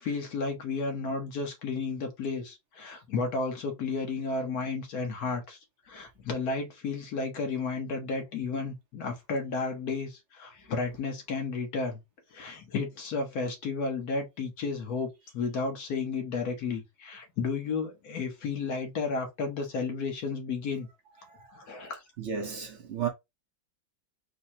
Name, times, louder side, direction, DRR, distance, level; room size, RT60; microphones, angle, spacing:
voice 1, 0.0-5.6 5.9-12.0 12.3-20.9 21.5-22.0, left 4 dB, 60° left, 1.4 m, -32 dB
voice 2, 21.3-21.6 21.9-23.1, right 7 dB, 60° right, 0.7 m, -35 dB
4.6 x 2.2 x 2.7 m
omnidirectional pair, 2.1 m